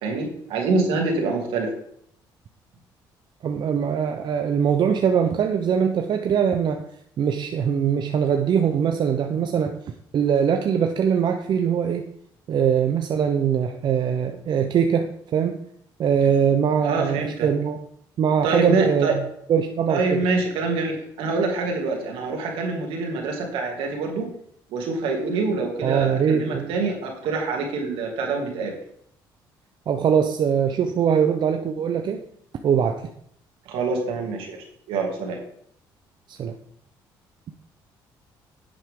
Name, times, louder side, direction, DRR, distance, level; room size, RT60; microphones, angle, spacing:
voice 1, 0.0-1.7 16.8-17.5 18.4-19.1 19.9-24.3 24.7-28.7 33.7-35.4, right 3 dB, 80° right, 1 dB, 2.7 m, -25 dB
voice 2, 3.4-6.8 7.2-9.8 10.1-12.1 12.5-15.6 16.0-17.8 18.2-19.2 19.5-20.2 25.8-26.7 29.9-32.2 32.6-33.1 36.3-36.5, right 7 dB, 55° right, 5 dB, 0.8 m, -22 dB
10.5 x 7.8 x 3.8 m, 0.68 s
cardioid pair, 85°, 9 cm